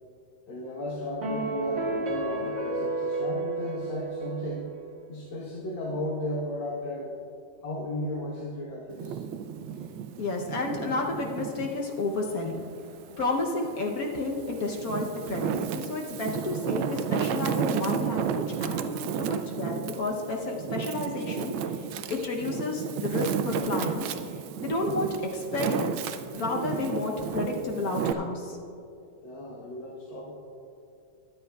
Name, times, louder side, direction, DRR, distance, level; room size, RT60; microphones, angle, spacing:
voice 1, 0.5-4.7 5.1-7.1 7.6-9.2 10.1-10.2 13.1-13.2 29.2-30.3, left 1 dB, 80° left, -4 dB, 2.0 m, -35 dB
sound 1, 1.2-4.7, right 2 dB, 40° right, 1.7 m, -31 dB
Wind, 8.9-11.8 12.3-13.6 14.2-28.1, right 8 dB, 85° right, 1.4 m, -32 dB
voice 2, 10.2-12.6 13.2-24.2 24.6-28.6, left 3 dB, 55° left, 0 dB, 1.1 m, -31 dB
22.5 x 8.9 x 2.3 m, 2.6 s
omnidirectional pair, 2.1 m